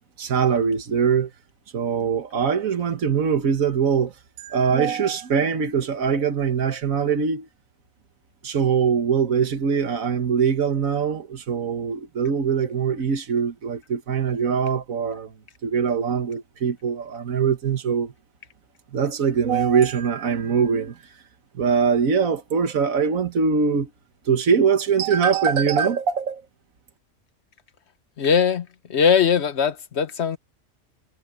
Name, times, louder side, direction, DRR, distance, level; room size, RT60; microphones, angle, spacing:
voice 1, 0.2-1.3 1.7-7.5 8.4-15.3 15.6-18.1 18.9-21.1 21.5-23.9 24.3-26.4, right 6 dB, 85° right, 1.7 m, -22 dB
voice 2, 28.2-30.4, left 7 dB, 55° left, 1.3 m, -20 dB
omnidirectional pair, 1.4 m